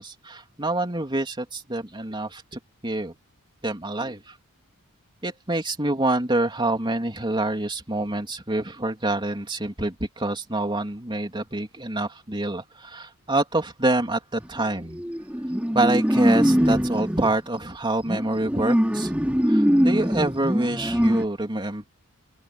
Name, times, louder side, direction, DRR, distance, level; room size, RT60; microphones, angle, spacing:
voice 1, 0.0-3.1 3.6-4.3 5.2-15.0 15.7-19.1 19.4-21.9, right 2 dB, 20° right, 3.4 m, -26 dB
sound 1, 14.4-14.6 14.9-17.4 18.0-21.2, equal, 5° right, 3.4 m, -22 dB
open air
head